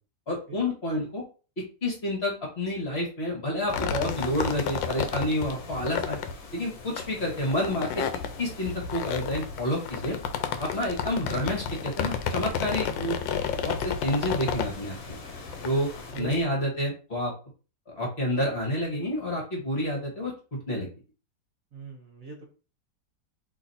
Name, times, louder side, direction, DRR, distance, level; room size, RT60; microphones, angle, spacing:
voice 1, 0.3-1.2 1.6-6.2 6.5-8.1 8.4-10.2 10.6-13.4 13.6-15.2 15.6-15.9 16.2-17.3 18.0-20.9, left 1 dB, 35° left, -1 dB, 1.5 m, -29 dB
sound 1, 3.7-16.4, left 7 dB, 85° left, 1.3 m, -32 dB
sound 2, 4.1-16.1, left 3 dB, 55° left, 1.4 m, -46 dB
voice 2, 16.1-16.5 21.7-22.5, right 5 dB, 55° right, 1 dB, 1.3 m, -41 dB
4.0 x 3.2 x 4.1 m, 0.35 s
omnidirectional pair, 2.0 m